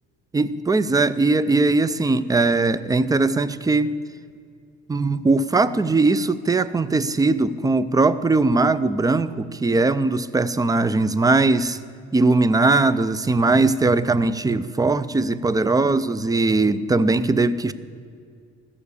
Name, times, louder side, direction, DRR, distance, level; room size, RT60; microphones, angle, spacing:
voice 1, 0.3-3.9 4.9-11.8 12.1-17.7, right 3 dB, 15° right, 14 dB, 0.4 m, -20 dB
14.5 x 7.0 x 8.4 m, 2.3 s
cardioid pair, 115°, 29 cm